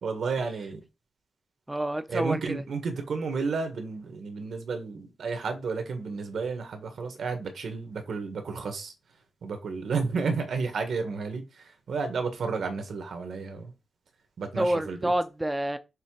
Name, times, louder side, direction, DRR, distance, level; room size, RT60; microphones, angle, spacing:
voice 1, 0.0-0.8 2.1-8.9 9.4-13.7 14.4-15.1, right 4 dB, 70° right, 1.5 m, -32 dB
voice 2, 1.7-2.6 14.6-15.8, right 1 dB, 10° right, 0.6 m, -28 dB
6.7 x 3.4 x 4.8 m
wide cardioid pair, 180°, 0 cm